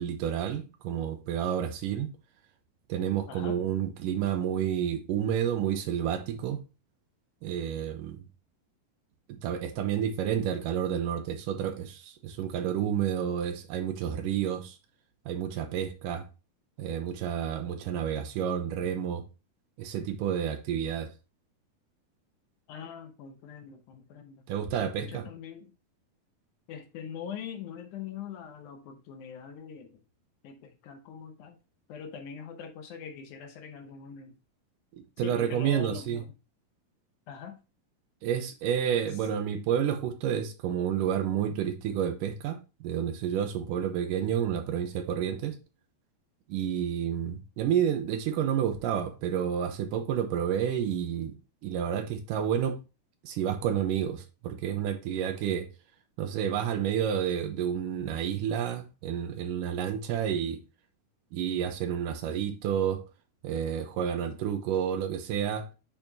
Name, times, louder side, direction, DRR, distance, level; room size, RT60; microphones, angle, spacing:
voice 1, 0.0-2.1 2.9-6.6 7.4-8.2 9.3-14.8 15.3-16.2 16.8-19.2 19.8-21.1 24.5-25.2 34.9-36.2 38.2-45.6 46.5-51.3 51.6-52.8 53.2-55.7 56.2-60.6 61.3-63.0 63.4-65.7, right 9 dB, 75° right, 2.3 m, -30 dB
voice 2, 3.3-3.6 22.7-24.4 24.8-25.7 26.7-30.0 30.4-31.6 31.9-34.3 35.2-36.3 37.3-37.6, left 7 dB, 75° left, 1.9 m, -42 dB
8.9 x 4.2 x 2.7 m
omnidirectional pair, 4.3 m